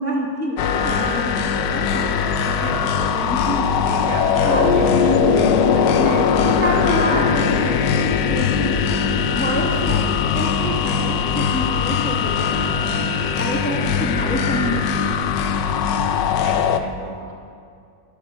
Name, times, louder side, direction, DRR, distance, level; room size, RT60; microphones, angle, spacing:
voice 1, 0.0-2.1 2.4-2.8 3.1-3.7 4.4-4.7 6.0-8.9 9.3-15.6, equal, 10° left, -2 dB, 0.5 m, -27 dB
sound 1, 0.6-16.8, left 6 dB, 85° left, 1.2 m, -20 dB
voice 2, 2.5-6.8 8.7-9.1 16.4-17.3, right 2 dB, 30° right, -2 dB, 1.2 m, -33 dB
9.7 x 6.4 x 6.5 m, 2.4 s
omnidirectional pair, 1.8 m